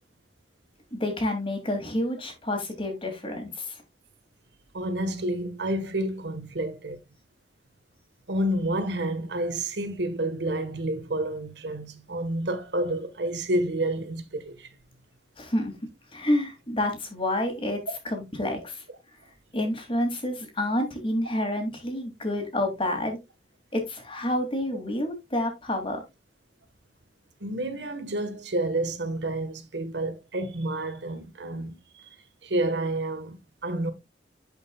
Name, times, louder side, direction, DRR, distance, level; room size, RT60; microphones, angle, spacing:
voice 1, 0.9-3.8 15.4-15.7 16.1-18.8 19.5-23.2 23.7-26.0, left 1 dB, 30° left, 2.9 m, -29 dB
voice 2, 4.7-7.0 8.3-14.7 27.4-32.1 32.4-33.9, right 1 dB, 75° right, 1.6 m, -29 dB
11.5 x 5.8 x 2.4 m
head